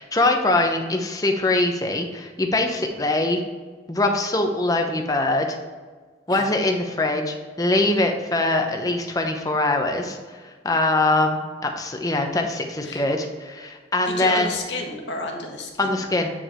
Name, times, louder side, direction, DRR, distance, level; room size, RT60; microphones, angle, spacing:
voice 1, 0.0-3.4 3.9-5.6 6.3-14.5 15.8-16.3, left 2 dB, 20° left, 3 dB, 0.8 m, -23 dB
voice 2, 14.1-16.0, left 2 dB, 85° left, 2 dB, 1.4 m, -31 dB
8.5 x 5.1 x 4.4 m, 1.5 s
head